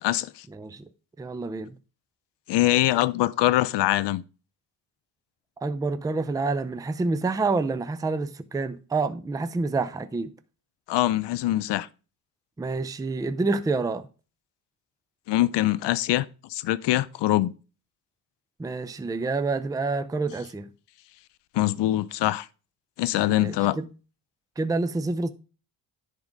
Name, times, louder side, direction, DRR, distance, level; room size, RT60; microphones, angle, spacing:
voice 1, 0.0-0.4 2.5-4.2 10.9-11.9 15.3-17.5 21.5-22.5 23.0-23.8, left 16 dB, 90° left, 0.6 m, -23 dB
voice 2, 0.5-0.9 1.2-1.8 5.6-10.3 12.6-14.1 18.6-20.7 23.3-23.9 24.6-25.3, right 3 dB, 10° right, 0.5 m, -28 dB
10.5 x 3.7 x 5.2 m
cardioid pair, 115°, 40 cm